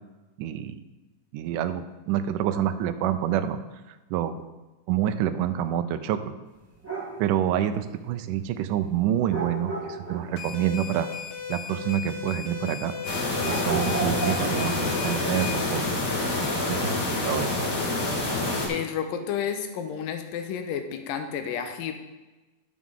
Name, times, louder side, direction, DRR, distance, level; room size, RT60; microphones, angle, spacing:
voice 1, 0.4-0.8 1.3-3.6 4.1-4.3 4.9-6.3 7.2-11.1 11.5-12.9 13.5-15.8 16.7-16.9 17.2-17.6, right 10 dB, 80° right, 10 dB, 2.0 m, -27 dB
sound 1, 6.7-7.3 9.3-10.3 13.4-15.2, right 4 dB, 5° right, 1.4 m, -33 dB
sound 2, 10.4-15.7, left 7 dB, 65° left, 2.1 m, -37 dB
sound 3, 13.0-18.7, left 2 dB, 45° left, 1.5 m, -27 dB
voice 2, 18.7-21.9, left 8 dB, 85° left, 7 dB, 2.5 m, -31 dB
12.5 x 6.0 x 3.7 m, 1.1 s
omnidirectional pair, 3.9 m